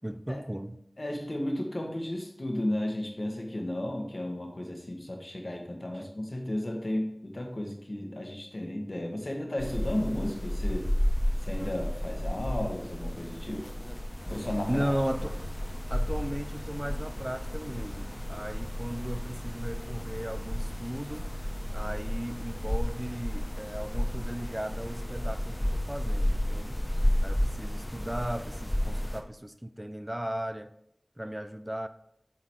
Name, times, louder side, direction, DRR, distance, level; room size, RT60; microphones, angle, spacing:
voice 1, 0.0-0.8 5.9-6.1 14.7-15.4 15.9-21.3 21.7-26.8 27.2-30.7 31.2-31.9, equal, 15° right, 0.5 m, -36 dB
voice 2, 1.0-10.9 11.4-13.7 14.3-14.9, left 1 dB, 55° left, 1.5 m, -34 dB
sound 1, 9.6-29.2, equal, 15° left, 0.8 m, -32 dB
7.5 x 3.9 x 4.8 m
wide cardioid pair, 55°, 0 cm